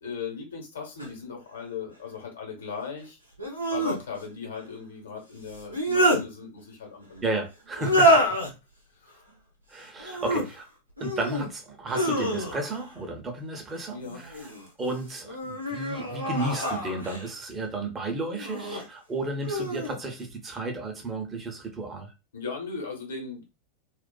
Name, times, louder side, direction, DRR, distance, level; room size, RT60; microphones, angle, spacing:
voice 1, 0.0-3.2 3.7-7.2 7.9-8.0 9.0-9.2 13.9-14.2 22.3-23.4, left 5 dB, 65° left, 1.1 m, -38 dB
sound 1, 1.0-1.1 3.4-4.0 5.5-6.2 7.8-8.5 10.0-10.5 11.0-11.5 11.9-12.8 14.0-14.6 15.3-17.3 18.4-18.8 19.4-20.0, right 1 dB, 90° right, 0.8 m, -26 dB
voice 2, 7.2-8.2 9.7-10.7 11.0-14.5 14.8-22.1, right 2 dB, 20° right, 0.7 m, -33 dB
2.4 x 2.4 x 2.2 m
figure-of-eight pair, 90°, 0 cm